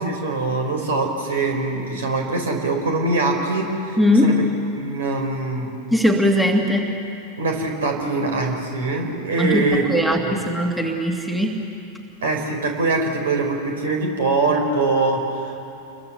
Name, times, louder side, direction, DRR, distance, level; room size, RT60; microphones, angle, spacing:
voice 1, 0.0-4.3 4.7-5.7 7.4-9.8 10.1-10.4 12.2-15.6, right 3 dB, 65° right, 2 dB, 4.7 m, -23 dB
voice 2, 4.0-4.5 5.9-7.1 9.4-11.8, left 1 dB, 5° right, 2 dB, 2.2 m, -20 dB
29.5 x 23.0 x 7.0 m, 2.8 s
figure-of-eight pair, 90°, 0 cm